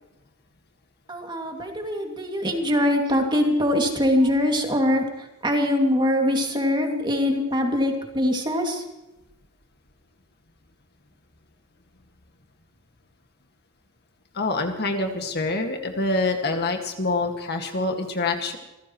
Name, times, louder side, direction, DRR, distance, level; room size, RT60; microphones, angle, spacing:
voice 1, 1.1-8.8, left 1 dB, 20° right, 2 dB, 2.5 m, -23 dB
voice 2, 14.3-18.6, left 2 dB, 50° left, 4 dB, 1.9 m, -26 dB
26.5 x 15.5 x 3.1 m, 0.96 s
head